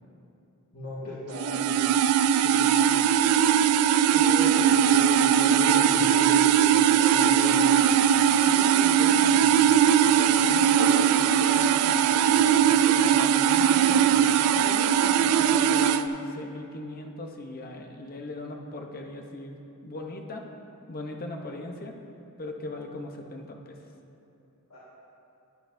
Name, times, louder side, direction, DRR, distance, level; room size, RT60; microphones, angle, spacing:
voice 1, 0.7-1.8 4.1-7.9 24.7-24.8, equal, 85° left, -10 dB, 1.9 m, -37 dB
sound 1, 1.3-16.0, right 9 dB, 75° right, 0.3 m, -20 dB
voice 2, 2.4-3.4 8.4-20.5 20.9-22.0 22.4-23.8, left 2 dB, 40° left, 2 dB, 0.8 m, -39 dB
12.5 x 9.6 x 2.6 m, 2.8 s
head